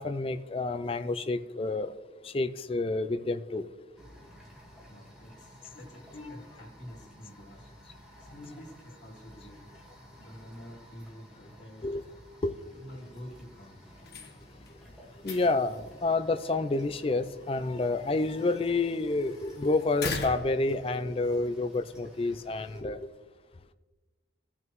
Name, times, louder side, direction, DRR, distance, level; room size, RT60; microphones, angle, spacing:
voice 1, 0.0-1.9 2.2-3.7 6.2-6.3 11.8-12.0 12.4-12.5 15.2-23.0, left 3 dB, 30° left, 0.4 m, -29 dB
sound 1, 3.9-22.8, equal, 5° right, 1.6 m, -54 dB
voice 2, 4.9-7.7 8.2-9.6 10.2-11.9 12.7-13.9, left 1 dB, 80° left, 2.5 m, -47 dB
sound 2, 13.9-21.4, left 3 dB, 60° left, 1.2 m, -42 dB
16.0 x 6.1 x 3.0 m
head